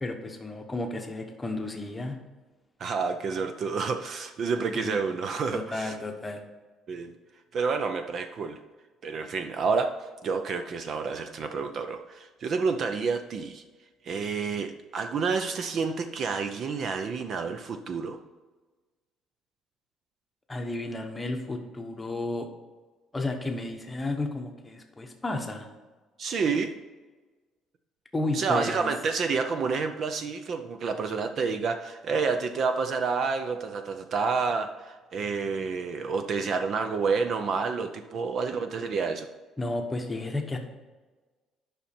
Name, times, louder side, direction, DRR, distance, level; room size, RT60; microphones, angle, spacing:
voice 1, 0.0-2.2 4.7-5.0 5.5-6.4 20.5-22.5 23.1-25.7 28.1-28.9 39.6-40.6, left 2 dB, 10° left, 4 dB, 0.9 m, -32 dB
voice 2, 2.8-5.9 6.9-7.1 7.5-8.6 9.0-9.9 10.2-13.6 14.0-18.2 26.2-26.7 28.3-39.3, right 5 dB, 35° right, 8 dB, 0.5 m, -29 dB
10.0 x 5.8 x 4.3 m, 1.3 s
cardioid pair, 175°, 0 cm